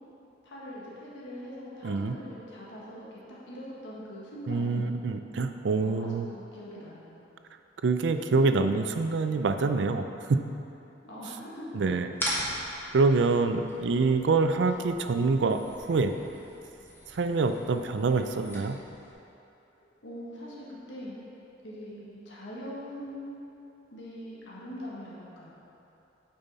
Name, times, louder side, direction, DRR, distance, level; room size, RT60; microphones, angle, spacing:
voice 1, 0.4-4.9 5.8-7.2 11.0-11.6 20.0-21.2 21.6-23.4 23.9-25.5, equal, 80° left, -6 dB, 1.6 m, -42 dB
voice 2, 1.8-2.1 4.5-6.3 7.8-10.4 11.7-12.1 12.9-15.6 15.9-16.1 17.1-18.8, right 3 dB, 70° right, 8 dB, 0.4 m, -26 dB
sound 1, 12.1-19.1, equal, 10° left, 1.3 m, -40 dB
8.8 x 5.5 x 4.1 m, 2.9 s
head